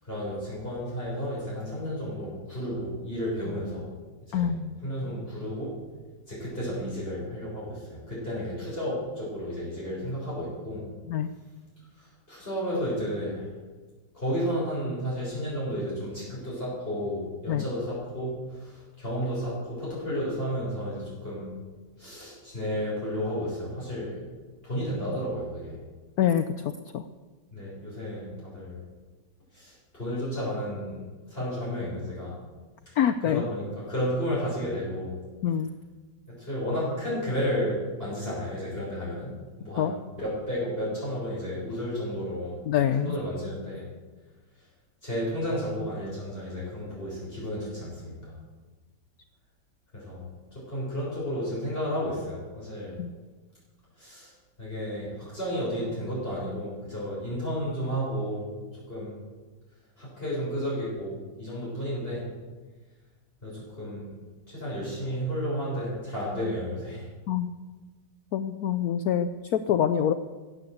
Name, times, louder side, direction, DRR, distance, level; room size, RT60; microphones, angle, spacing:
voice 1, 0.0-3.8 4.3-4.5 4.8-5.7 6.3-10.8 12.0-13.5 14.1-21.5 22.0-24.2 24.6-25.8 27.5-28.8 29.5-31.0 31.3-32.4 32.9-35.1 36.3-42.6 42.9-43.8 45.0-48.3 49.9-50.2 50.5-53.0 54.0-54.3 54.6-58.5 58.7-59.1 60.0-62.2 63.4-64.1 64.5-67.1, equal, 30° left, -8 dB, 7.0 m, -32 dB
voice 2, 4.3-4.8 11.1-11.3 17.5-17.6 26.2-26.4 26.9-27.0 33.0-33.4 35.4-35.7 39.8-39.9 42.7-43.1 53.0-53.1 67.3-67.5 68.3-70.1, left 9 dB, 65° left, 10 dB, 1.0 m, -25 dB
16.5 x 9.8 x 8.0 m, 1.3 s
omnidirectional pair, 2.0 m